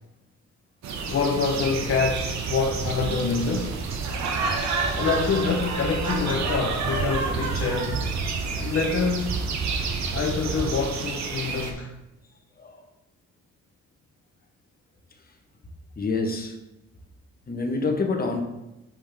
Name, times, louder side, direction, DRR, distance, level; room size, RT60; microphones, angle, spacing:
sound 1, 0.8-11.7, right 5 dB, 65° right, 1.1 m, -33 dB
voice 1, 1.1-3.8 4.9-8.0 8.6-9.4 10.1-11.9, left 5 dB, 45° left, 1 dB, 1.0 m, -26 dB
sound 2, 1.8-10.8, right 4 dB, 35° right, 0.6 m, -32 dB
Laughter, 4.0-8.1, right 3 dB, 90° right, 1.3 m, -30 dB
voice 2, 4.4-4.8 12.6-12.8 16.0-16.5 17.5-18.4, left 3 dB, 30° left, 3 dB, 1.2 m, -27 dB
7.4 x 5.4 x 3.5 m, 0.93 s
cardioid pair, 90°, 30 cm